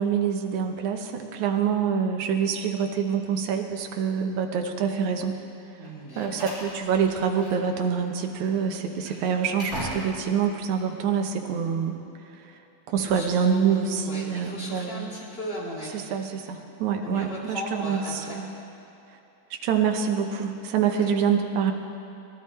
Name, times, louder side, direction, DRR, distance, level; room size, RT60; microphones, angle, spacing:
voice 1, 0.0-5.4 6.2-12.0 12.9-15.1 16.1-18.0 18.3-18.4 19.5-21.7, right 7 dB, 70° right, 4 dB, 2.1 m, -26 dB
voice 2, 5.8-6.5 13.1-16.1 17.0-18.4 21.0-21.1, equal, 20° left, -6 dB, 2.5 m, -37 dB
Slam, 5.8-7.8 8.1-8.3 8.8-10.4, right 1 dB, 35° right, 4.1 m, -39 dB
20.0 x 12.5 x 4.3 m, 2.8 s
omnidirectional pair, 3.8 m